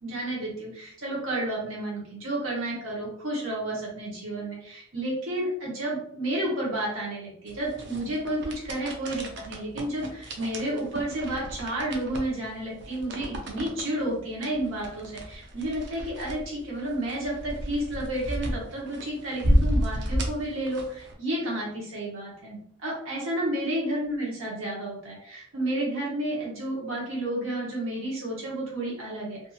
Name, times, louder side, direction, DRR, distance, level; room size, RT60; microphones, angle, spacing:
voice 1, 0.0-29.4, right 1 dB, 90° right, -4 dB, 0.9 m, -31 dB
sound 1, 7.5-21.1, equal, 60° right, 0.5 m, -32 dB
2.8 x 2.5 x 2.4 m, 0.66 s
head